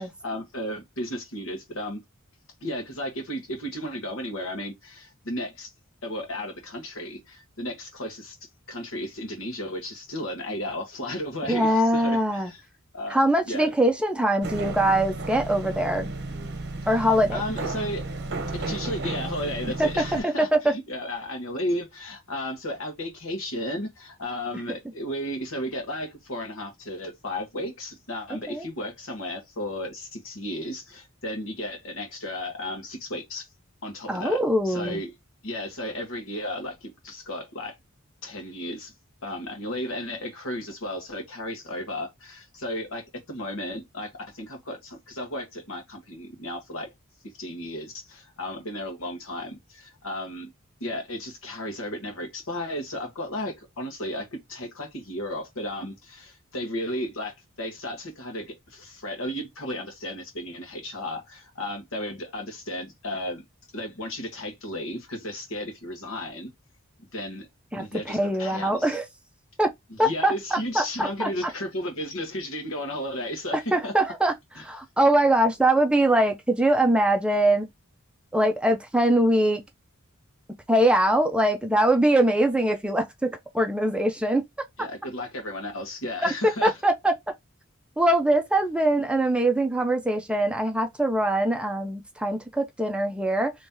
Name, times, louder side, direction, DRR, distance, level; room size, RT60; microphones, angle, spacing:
voice 1, 0.2-2.0 2.6-5.7 6.0-8.4 8.7-12.6 12.9-13.2 13.5-13.7 17.3-18.1 18.6-33.5 33.8-34.4 34.6-35.1 35.4-37.7 38.2-38.9 39.2-46.9 47.4-50.5 50.8-63.4 63.7-66.5 67.1-67.5 67.8-69.0 69.9-73.9 74.5-74.6 84.8-86.8, left 1 dB, 70° left, 1.4 m, -34 dB
voice 2, 11.5-12.5 13.1-16.1 16.9-17.4 19.8-19.9 20.4-20.7 28.5-28.6 34.1-35.0 67.7-69.0 69.6-69.7 70.0-70.3 70.7-71.3 73.7-74.3 74.6-77.7 78.3-79.6 80.7-84.4 86.6-87.1 88.0-93.5, right 1 dB, 5° right, 0.4 m, -22 dB
sound 1, 14.4-20.2, right 2 dB, 55° right, 0.8 m, -33 dB
3.1 x 2.8 x 3.6 m
head